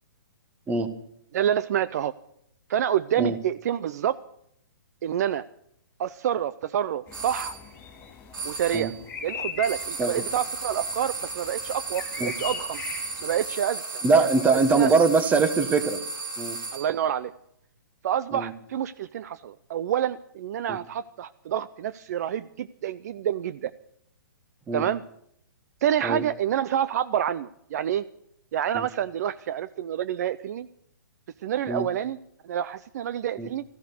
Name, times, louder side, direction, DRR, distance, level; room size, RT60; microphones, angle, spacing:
voice 1, 1.3-2.1 2.7-4.2 5.0-5.4 6.0-7.6 8.4-8.9 9.2-12.8 13.2-14.9 16.7-17.3 18.0-23.7 24.7-25.0 25.8-28.0 28.5-30.7 31.4-32.2 32.4-33.6, right 10 dB, 50° right, 16 dB, 0.5 m, -28 dB
sound 1, 7.1-13.6, left 6 dB, 20° left, 3.0 m, -40 dB
sound 2, 7.1-7.6 8.3-9.0 9.6-17.0, right 3 dB, 85° right, 3.2 m, -35 dB
voice 2, 14.0-16.0 16.4-16.6 18.3-18.5 20.7-20.8 24.7-24.9 26.0-26.2 28.7-28.9 31.7-31.9 33.4-33.5, right 4 dB, 15° right, 11 dB, 1.2 m, -22 dB
14.5 x 12.5 x 6.8 m, 0.71 s
hypercardioid pair, 140°, 11 cm